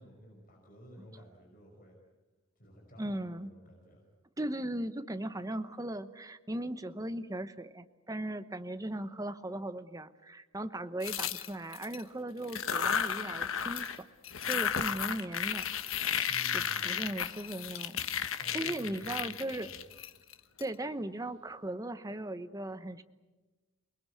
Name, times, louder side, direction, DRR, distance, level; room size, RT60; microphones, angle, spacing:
voice 1, 0.0-2.0 2.6-4.0 16.2-17.0 18.4-19.9, right 1 dB, 45° left, 0 dB, 5.4 m, -53 dB
voice 2, 3.0-3.5 4.4-13.9 14.4-15.7 16.2-18.0 18.5-19.7 20.6-23.0, right 1 dB, 15° right, 10 dB, 0.9 m, -38 dB
sound 1, 11.0-12.0 12.4-14.0 14.2-20.6, left 8 dB, 80° left, 1.3 m, -34 dB
28.5 x 20.5 x 8.4 m, 1.2 s
head